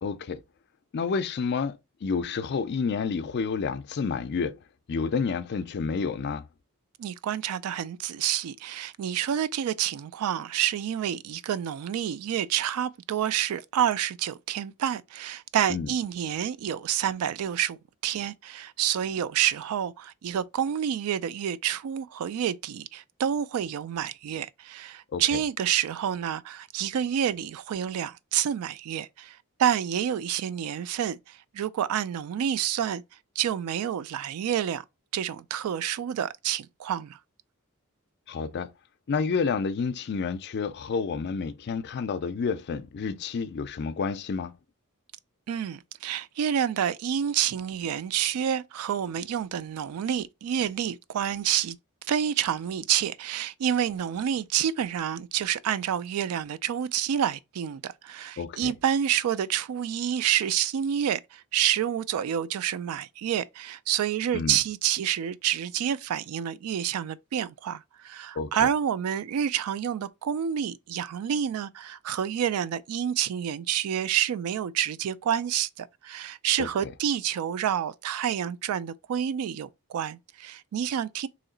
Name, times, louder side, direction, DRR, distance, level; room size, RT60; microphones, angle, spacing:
voice 1, 0.0-0.4 0.9-4.6 4.9-6.4 15.7-15.9 25.1-25.4 38.3-38.7 39.1-44.5 58.4-58.7 64.3-64.6 68.4-68.7 76.6-76.9, left 5 dB, 50° left, 0.4 m, -29 dB
voice 2, 7.0-17.8 18.0-33.0 33.4-34.8 35.1-37.2 45.5-51.8 52.1-81.3, right 9 dB, 70° right, 0.3 m, -28 dB
3.1 x 2.8 x 3.8 m
head